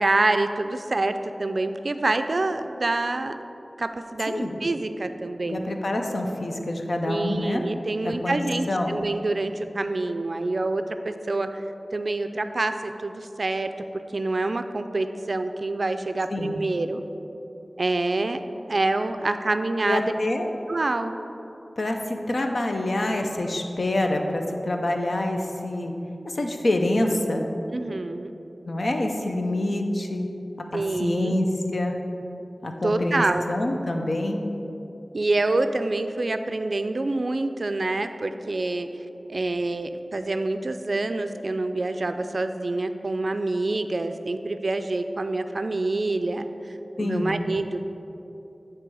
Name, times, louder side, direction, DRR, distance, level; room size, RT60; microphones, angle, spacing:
voice 1, 0.0-3.3 3.8-5.7 7.1-11.6 11.9-13.7 14.1-17.0 17.8-18.4 18.7-20.1 20.7-21.2 27.7-28.3 30.7-31.4 32.8-33.5 35.1-38.9 39.3-46.5 47.0-47.8, right 2 dB, 65° right, 8 dB, 0.3 m, -26 dB
voice 2, 4.3-4.6 5.5-7.6 8.0-8.4 8.7-9.0 16.3-16.6 19.8-20.5 21.8-25.9 26.3-27.4 28.6-32.0 32.6-34.4 47.0-47.4, left 1 dB, 70° left, 3 dB, 0.6 m, -26 dB
9.0 x 3.2 x 4.7 m, 2.9 s
wide cardioid pair, 55°, 0 cm